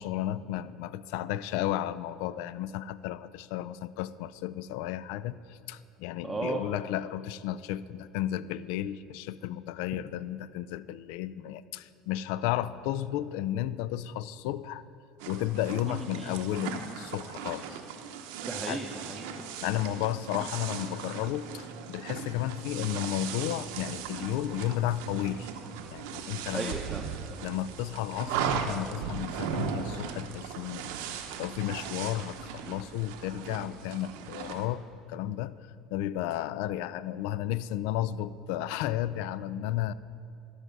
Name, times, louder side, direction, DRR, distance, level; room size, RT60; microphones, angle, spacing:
voice 1, 0.0-14.8 15.3-17.8 18.7-18.8 19.6-25.5 25.9-26.7 27.4-34.8 35.1-35.5 35.9-39.9, left 12 dB, 75° left, 16 dB, 0.3 m, -33 dB
voice 2, 6.2-6.6 15.9-16.3 18.4-19.3 26.5-27.5, right 2 dB, 15° right, 0 dB, 0.7 m, -36 dB
sound 1, 15.2-34.7, right 7 dB, 80° right, 0.7 m, -38 dB
12.0 x 4.8 x 6.7 m, 2.6 s
supercardioid pair, 100°, 0 cm